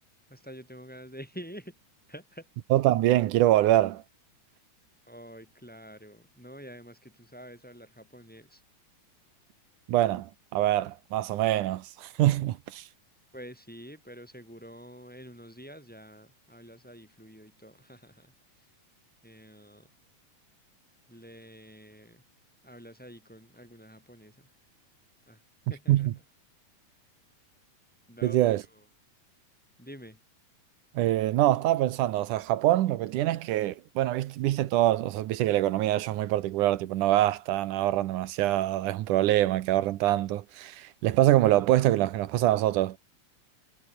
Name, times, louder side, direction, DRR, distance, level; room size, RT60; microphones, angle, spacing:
voice 1, 0.3-1.8 2.1-2.5 5.1-8.6 13.3-18.7 19.2-19.9 21.1-22.3 22.6-24.5 25.3-25.4 25.7-26.2 28.1-28.9 29.8-30.2, equal, 5° left, 6.4 m, -48 dB
voice 2, 2.7-4.0 9.9-12.9 25.9-26.1 28.2-28.6 31.0-43.0, right 14 dB, 85° right, 2.5 m, -24 dB
omnidirectional pair, 3.5 m